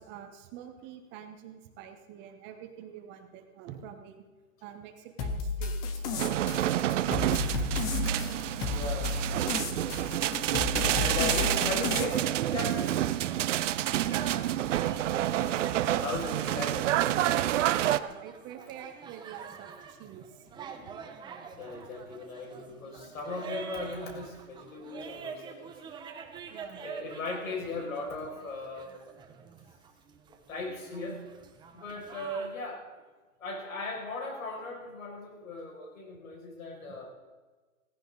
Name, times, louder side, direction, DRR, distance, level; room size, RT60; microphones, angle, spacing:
voice 1, 0.0-4.2 4.6-6.5 14.1-15.3 15.8-16.0 16.3-16.9 17.4-20.5 26.5-26.8 36.7-37.0, right 9 dB, 25° right, 6 dB, 1.3 m, -46 dB
sound 1, 5.2-12.0, left 4 dB, 10° left, 0.4 m, -33 dB
sound 2, 6.2-18.0, right 12 dB, 60° right, 0.8 m, -28 dB
voice 2, 7.3-8.2 8.7-9.2 11.0-13.1 16.0-16.8 21.6-25.7 26.8-29.0 30.5-31.3 31.7-32.8 33.4-37.1, left 2 dB, 75° left, 0 dB, 6.5 m, -37 dB
sound 3, 13.2-32.5, right 6 dB, 10° right, 0.9 m, -46 dB
17.0 x 15.5 x 4.1 m, 1.3 s
hypercardioid pair, 150°, 41 cm